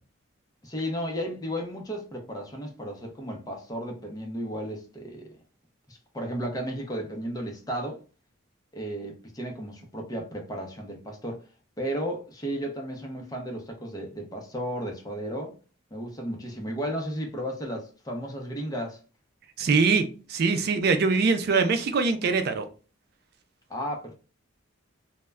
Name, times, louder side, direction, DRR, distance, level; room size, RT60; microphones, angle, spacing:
voice 1, 0.6-5.3 5.9-8.0 8.7-11.4 11.8-15.5 15.9-19.0 23.7-24.1, equal, 20° left, 0.6 m, -34 dB
voice 2, 19.6-22.7, right 4 dB, 50° right, 0.4 m, -23 dB
2.1 x 2.1 x 3.4 m
head